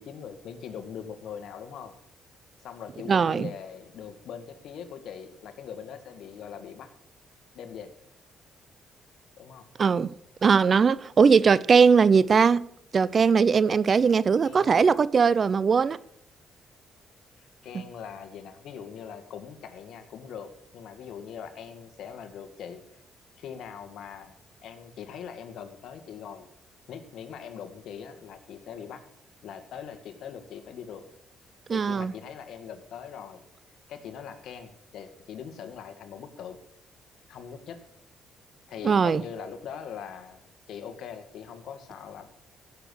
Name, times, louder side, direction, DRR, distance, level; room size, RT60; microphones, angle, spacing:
voice 1, 0.0-2.0 2.6-6.9 7.5-7.9 9.4-9.7 14.4-14.8 17.4-22.8 23.4-26.5 26.9-29.0 29.4-31.0 31.7-33.4 33.9-36.6 37.3-37.8 38.7-42.3, left 7 dB, 75° left, 1.8 m, -41 dB
voice 2, 3.1-3.5 9.8-10.1 10.4-12.7 12.9-16.0 17.7-17.8 31.7-32.1 38.8-39.2, right 5 dB, 45° right, 0.5 m, -20 dB
16.0 x 7.2 x 6.4 m
cardioid pair, 90°, 0 cm